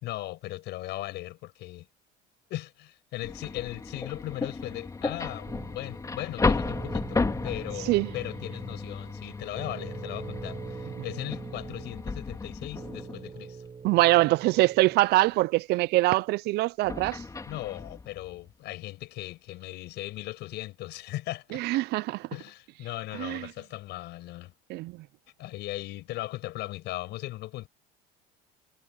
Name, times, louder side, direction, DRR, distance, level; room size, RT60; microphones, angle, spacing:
voice 1, 0.0-1.9 2.5-13.6 17.5-21.6 22.3-24.5 25.4-27.7, left 17 dB, 65° left, 5.9 m, -38 dB
sound 1, 3.2-13.4 16.8-18.5, left 3 dB, 15° left, 3.4 m, -34 dB
sound 2, 5.5-15.4, right 5 dB, 25° right, 5.4 m, -43 dB
voice 2, 13.8-17.2 21.5-22.2 23.1-23.5 24.7-24.9, right 19 dB, 60° right, 0.5 m, -23 dB
supercardioid pair, 115°, 19 cm